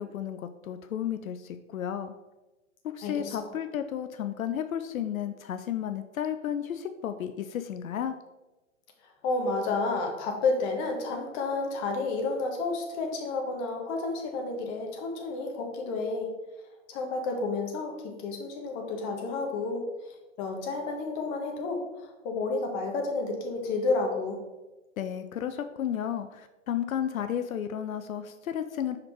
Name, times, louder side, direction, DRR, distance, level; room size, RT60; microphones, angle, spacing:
voice 1, 0.0-2.1 2.9-8.2 25.0-29.0, left 9 dB, 85° left, 9 dB, 0.6 m, -33 dB
voice 2, 3.0-3.5 9.2-16.3 16.9-24.4, left 3 dB, 30° left, 2 dB, 1.4 m, -31 dB
5.9 x 5.0 x 4.4 m, 1.1 s
hypercardioid pair, 135°, 40 cm